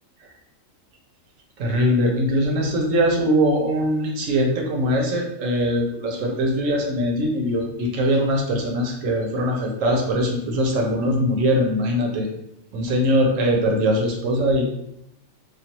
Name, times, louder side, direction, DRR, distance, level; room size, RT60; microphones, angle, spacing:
voice 1, 1.6-12.3 12.7-14.6, equal, 75° right, 1 dB, 1.1 m, -21 dB
3.2 x 2.3 x 2.8 m, 0.82 s
omnidirectional pair, 1.4 m